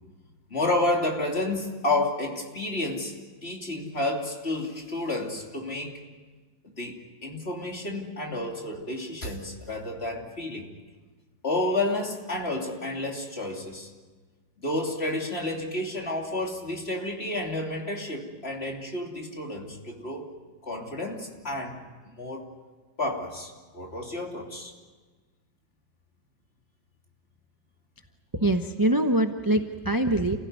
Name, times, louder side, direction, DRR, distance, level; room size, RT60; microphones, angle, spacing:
voice 1, 0.5-3.2 3.4-6.0 6.6-10.7 11.4-13.9 14.6-20.3 20.6-22.5 23.0-24.7, left 2 dB, 30° left, 0 dB, 3.2 m, -30 dB
voice 2, 28.3-30.4, right 1 dB, 20° right, 5 dB, 0.6 m, -24 dB
29.0 x 16.5 x 9.6 m, 1.4 s
omnidirectional pair, 2.1 m